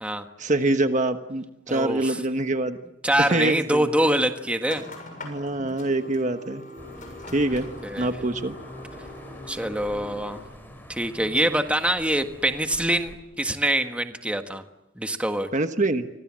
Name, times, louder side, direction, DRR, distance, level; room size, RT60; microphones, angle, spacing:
voice 1, 0.4-2.8 3.2-3.9 5.2-6.6 7.3-7.7 8.0-8.5 15.5-16.1, right 2 dB, 40° right, 8 dB, 1.3 m, -25 dB
voice 2, 1.7-2.2 3.0-4.8 7.8-8.1 9.5-10.4 10.9-14.6 14.9-15.5, right 1 dB, 5° right, 6 dB, 1.6 m, -24 dB
sound 1, 4.6-10.4, left 2 dB, 45° left, 7.0 m, -42 dB
sound 2, 6.8-13.1, equal, 10° left, 6.1 m, -44 dB
30.0 x 25.5 x 7.5 m, 0.93 s
head